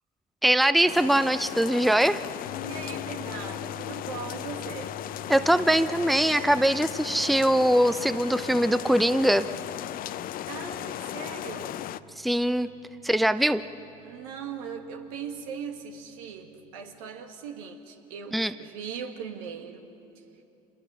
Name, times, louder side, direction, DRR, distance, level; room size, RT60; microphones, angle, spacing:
voice 1, 0.4-2.2 5.3-9.5 12.2-12.7 13.0-13.6 18.3-18.5, right 1 dB, ahead, 13 dB, 0.6 m, -22 dB
sound 1, 0.9-12.0, left 12 dB, 55° left, 0.6 m, -36 dB
sound 2, 2.4-17.0, left 6 dB, 75° left, 1.3 m, -46 dB
voice 2, 2.6-5.0 10.5-11.8 14.0-19.9, right 6 dB, 80° right, 4 dB, 1.8 m, -39 dB
27.0 x 21.5 x 5.6 m, 3.0 s
hypercardioid pair, 60°, 18 cm